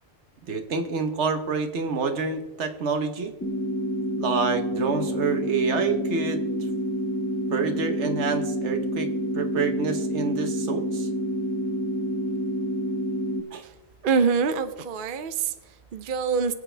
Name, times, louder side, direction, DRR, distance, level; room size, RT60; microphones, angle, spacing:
voice 1, 0.5-3.3 4.2-6.4 7.5-11.1 13.5-13.6, right 4 dB, 75° right, 8 dB, 1.4 m, -27 dB
sound 1, 3.4-13.4, equal, 15° left, 1.1 m, -28 dB
voice 2, 14.0-16.5, right 5 dB, 55° right, 10 dB, 0.8 m, -25 dB
24.0 x 8.5 x 3.3 m, 1.1 s
omnidirectional pair, 1.2 m